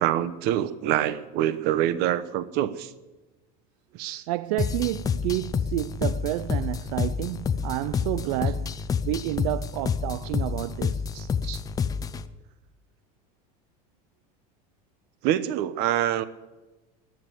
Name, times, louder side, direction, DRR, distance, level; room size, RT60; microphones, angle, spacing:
voice 1, 0.0-2.9 3.9-4.2 11.1-11.6 15.2-16.2, right 12 dB, 55° right, 1.0 m, -26 dB
voice 2, 4.3-8.8 9.0-11.1, right 17 dB, 75° right, 0.4 m, -30 dB
sound 1, 4.6-12.2, left 6 dB, 20° left, 0.5 m, -28 dB
14.0 x 10.0 x 9.1 m
cardioid pair, 150°, 20 cm